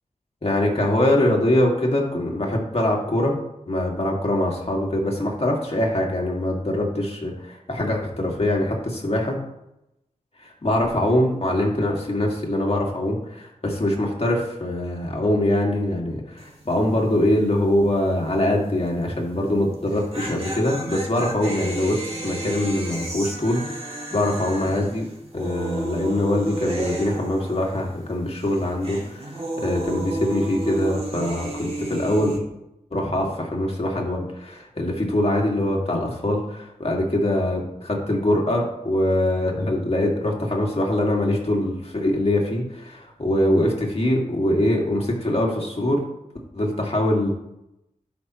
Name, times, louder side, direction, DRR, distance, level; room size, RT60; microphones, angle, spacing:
voice 1, 0.4-3.3 3.7-9.4 10.4-25.1 25.3-32.4 32.9-46.0 46.5-47.3, left 1 dB, 45° left, -1 dB, 2.2 m, -23 dB
sound 1, 16.4-16.7 17.0-17.1 19.7-28.1 28.4-32.4, right 1 dB, 45° right, 2.3 m, -32 dB
11.5 x 5.9 x 3.1 m, 0.86 s
cardioid pair, 45°, 14 cm